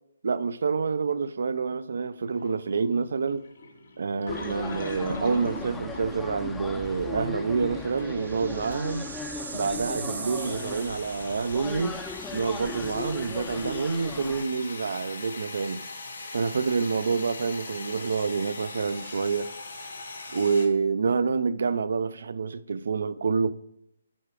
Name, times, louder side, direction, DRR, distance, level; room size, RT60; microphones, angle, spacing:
voice 1, 0.2-3.5 4.0-9.1 9.5-12.0 12.3-15.8 16.3-19.5 20.3-23.5, right 5 dB, 70° right, 0.5 m, -27 dB
sound 1, 2.3-6.1 6.8-7.0 7.4-8.0 8.7-8.9 10.2-20.7, left 3 dB, 70° left, 2.2 m, -40 dB
sound 2, 4.3-14.4, left 3 dB, 10° left, 0.5 m, -38 dB
sound 3, 7.1-11.8, right 4 dB, 90° right, 1.4 m, -41 dB
7.7 x 4.9 x 4.9 m
hypercardioid pair, 155°, 0 cm